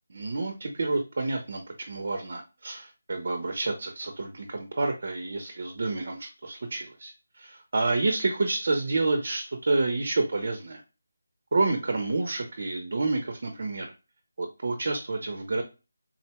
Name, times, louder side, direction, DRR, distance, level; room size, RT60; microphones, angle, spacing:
voice 1, 0.1-10.8 11.5-13.9 14.4-15.6, right 3 dB, 45° right, 5 dB, 0.6 m, -29 dB
3.8 x 2.2 x 2.9 m, 0.29 s
figure-of-eight pair, 175°, 0 cm